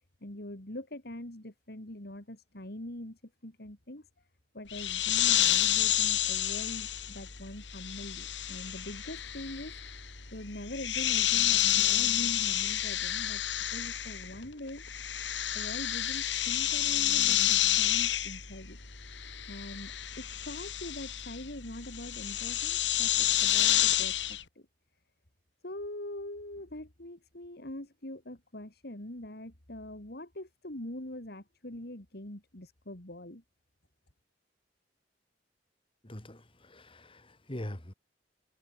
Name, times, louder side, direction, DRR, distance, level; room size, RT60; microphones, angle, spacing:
voice 1, 0.2-4.1 4.5-9.8 10.3-13.4 13.7-14.8 15.5-18.8 19.5-24.7 25.6-33.4, left 1 dB, 60° left, 3.6 m, -43 dB
sound 1, 4.7-14.4 14.7-24.4, left 12 dB, 80° left, 3.1 m, -29 dB
voice 2, 36.0-37.9, left 1 dB, 30° left, 2.5 m, -43 dB
head